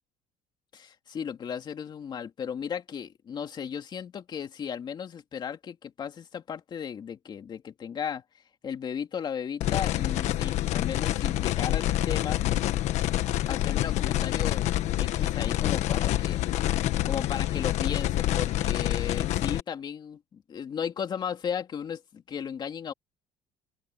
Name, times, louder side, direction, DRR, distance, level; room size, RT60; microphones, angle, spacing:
voice 1, 0.7-8.2 8.6-12.4 13.5-16.7 17.1-22.9, left 7 dB, 35° left, 2.7 m, -35 dB
sound 1, 9.6-19.6, left 14 dB, 60° left, 1.4 m, -27 dB
open air
cardioid pair, 145°, 13 cm